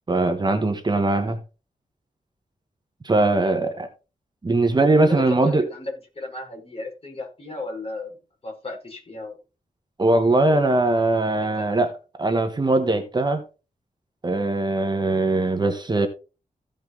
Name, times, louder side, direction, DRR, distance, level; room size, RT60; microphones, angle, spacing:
voice 1, 0.1-1.4 3.0-3.9 4.4-5.7 10.0-11.9 12.2-13.4 14.2-16.1, right 2 dB, 30° right, 1.3 m, -21 dB
voice 2, 5.1-9.4 10.4-10.8 11.4-11.8, left 3 dB, 40° left, 4.9 m, -34 dB
15.5 x 5.4 x 3.9 m
wide cardioid pair, 155°, 15 cm